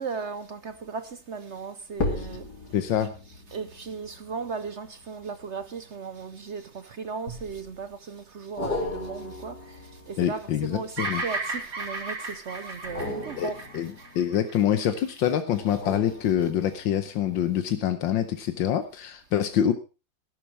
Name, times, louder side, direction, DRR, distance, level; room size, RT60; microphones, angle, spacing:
voice 1, 0.0-2.5 3.5-9.8 10.1-13.6 15.6-15.8, right 5 dB, 55° right, 0.8 m, -36 dB
sound 1, 0.7-1.0 1.9-6.6 7.3-7.9 8.6-11.6 12.8-14.8 15.6-17.0 17.5-17.6, left 2 dB, 55° left, 3.0 m, -37 dB
voice 2, 2.7-3.1 10.2-11.2 13.4-19.7, left 10 dB, 80° left, 1.6 m, -26 dB
Bird vocalization bird call bird song, 11.0-15.3, right 3 dB, 80° right, 4.4 m, -34 dB
13.0 x 11.0 x 4.6 m
omnidirectional pair, 2.0 m